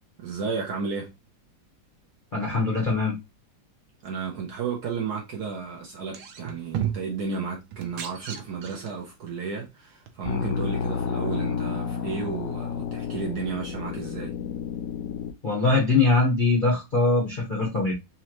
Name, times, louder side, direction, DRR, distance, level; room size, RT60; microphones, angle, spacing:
voice 1, 0.2-1.1 4.0-14.3, right 5 dB, 60° right, 1.1 m, -33 dB
voice 2, 2.3-3.1 15.4-17.9, left 3 dB, 40° left, 0.7 m, -22 dB
sound 1, 6.0-7.2 7.7-9.0 10.1-10.2, right 9 dB, 80° right, 1.5 m, -33 dB
sound 2, 10.2-15.3, left 6 dB, 75° left, 1.1 m, -30 dB
4.3 x 2.6 x 2.9 m
omnidirectional pair, 2.3 m